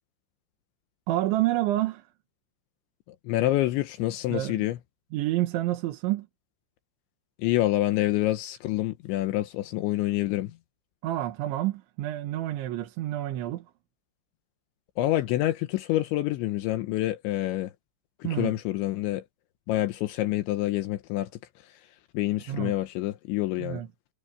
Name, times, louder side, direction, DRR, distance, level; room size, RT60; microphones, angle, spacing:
voice 1, 1.1-2.1 4.3-4.6 5.1-6.3 11.0-13.7 18.2-18.6 22.5-22.8 23.6-23.9, right 14 dB, 80° right, 3.9 m, -28 dB
voice 2, 3.3-4.8 7.4-10.5 15.0-17.7 18.2-19.2 19.7-21.3 22.1-23.8, left 15 dB, 80° left, 3.3 m, -27 dB
omnidirectional pair, 5.3 m